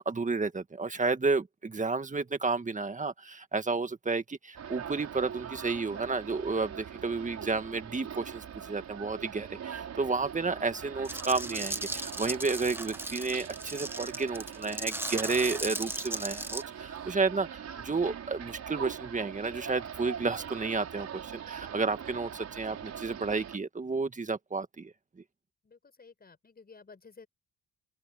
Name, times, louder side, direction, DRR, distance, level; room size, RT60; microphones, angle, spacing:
voice 1, 0.0-24.9, right 4 dB, 25° right, 1.8 m, -31 dB
sound 1, 4.5-23.6, right 8 dB, 60° right, 5.6 m, -42 dB
sound 2, 11.0-16.6, right 1 dB, 5° right, 1.5 m, -36 dB
voice 2, 22.0-22.3 25.6-27.3, left 4 dB, 30° left, 5.6 m, -55 dB
open air
cardioid pair, 90°, 30 cm